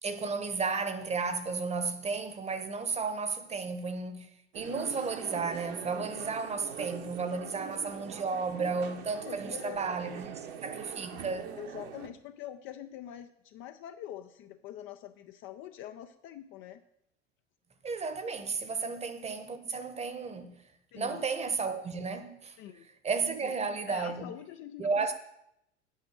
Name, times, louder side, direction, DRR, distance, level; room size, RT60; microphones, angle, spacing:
voice 1, 0.0-4.3 4.5-11.5 17.8-20.7 21.0-22.6 23.0-24.3 24.8-25.1, right 4 dB, 20° right, 1.0 m, -33 dB
sound 1, 4.5-12.1, right 8 dB, 50° right, 1.1 m, -43 dB
voice 2, 9.3-9.8 11.6-16.8 18.8-18.9 20.9-21.2 22.6-22.9 23.4-23.5 23.9-25.1, left 11 dB, 35° left, 0.5 m, -44 dB
9.0 x 5.9 x 6.5 m
figure-of-eight pair, 80°, 36 cm